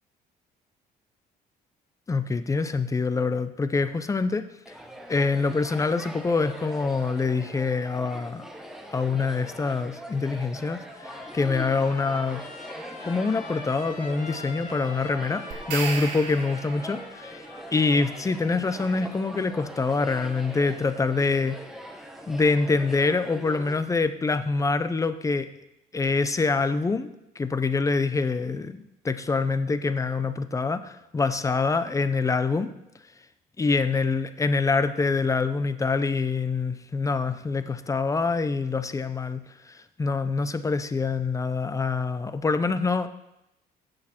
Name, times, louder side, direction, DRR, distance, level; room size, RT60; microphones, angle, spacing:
voice 1, 2.1-4.5 5.1-8.5 8.9-12.4 13.0-17.4 17.7-21.6 22.3-25.5 25.9-27.1 27.4-32.7 33.6-43.1, left 4 dB, 20° left, 12 dB, 0.7 m, -25 dB
sound 1, 4.7-23.7, equal, ahead, 1.3 m, -41 dB
Trumpet, 10.8-18.4, left 3 dB, 50° left, 1.9 m, -44 dB
sound 2, 15.5-17.1, right 5 dB, 75° right, 2.4 m, -34 dB
15.5 x 6.5 x 4.4 m, 0.86 s
cardioid pair, 110°, 17 cm